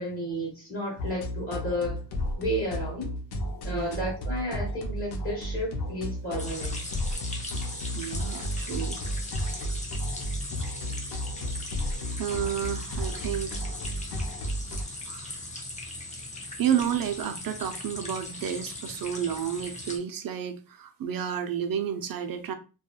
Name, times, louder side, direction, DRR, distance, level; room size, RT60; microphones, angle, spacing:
voice 1, 0.0-2.0 2.4-3.1 3.6-6.8, equal, 35° left, 1.2 m, -32 dB
sound 1, 1.0-14.8, equal, 70° left, 0.6 m, -33 dB
voice 2, 3.7-4.0 7.9-9.0 12.1-13.6 15.1-15.3 16.6-22.5, right 9 dB, 60° right, 0.5 m, -31 dB
sound 2, 6.4-20.0, left 2 dB, 20° left, 0.5 m, -39 dB
3.0 x 2.3 x 2.2 m
wide cardioid pair, 150°, 40 cm